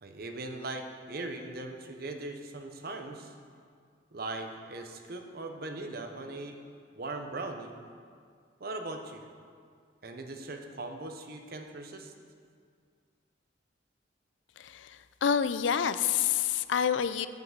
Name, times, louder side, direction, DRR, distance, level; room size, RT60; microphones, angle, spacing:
voice 1, 0.0-3.3 4.1-6.6 6.9-7.7 8.6-9.3 10.0-12.1, right 2 dB, 55° right, 5 dB, 0.9 m, -39 dB
voice 2, 14.6-17.3, left 8 dB, 85° left, 13 dB, 0.4 m, -28 dB
9.1 x 6.0 x 7.3 m, 2.1 s
head